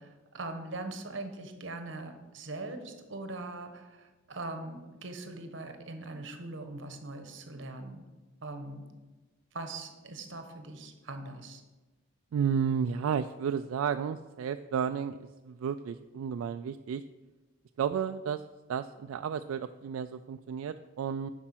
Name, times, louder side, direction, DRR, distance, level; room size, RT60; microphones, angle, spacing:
voice 1, 0.0-8.0 8.4-8.8 9.5-11.6, right 2 dB, 60° right, 7 dB, 1.0 m, -41 dB
voice 2, 12.3-17.0 17.8-18.4 18.7-21.3, right 7 dB, 80° right, 9 dB, 0.3 m, -32 dB
10.5 x 4.4 x 6.0 m, 1.2 s
head